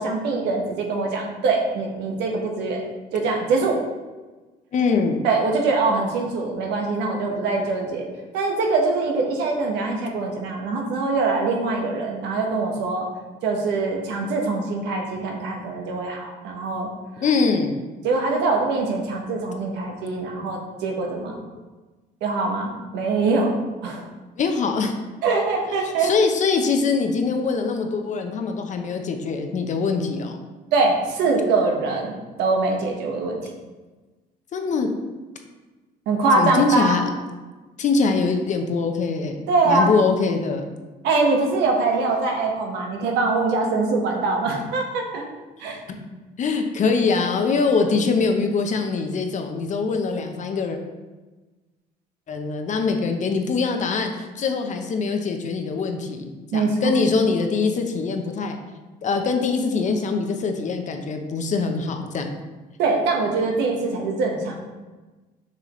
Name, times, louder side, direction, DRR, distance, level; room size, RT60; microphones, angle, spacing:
voice 1, 0.0-2.8 3.1-3.8 5.2-8.0 8.3-13.1 13.4-16.9 18.0-21.4 22.2-23.5 23.8-24.0 25.2-26.1 30.7-33.4 36.1-37.0 39.5-39.9 41.0-45.2 45.6-45.8 56.5-56.9 62.8-64.5, right 3 dB, 85° right, 1 dB, 1.3 m, -23 dB
voice 2, 4.7-5.2 15.2-15.3 17.2-17.7 24.4-24.9 25.8-30.4 34.5-34.9 36.3-37.0 37.8-40.8 46.0-46.1 46.4-50.8 52.3-58.6 59.0-62.3, left 4 dB, 45° left, 5 dB, 0.9 m, -23 dB
6.8 x 5.5 x 3.2 m, 1.2 s
cardioid pair, 110°, 17 cm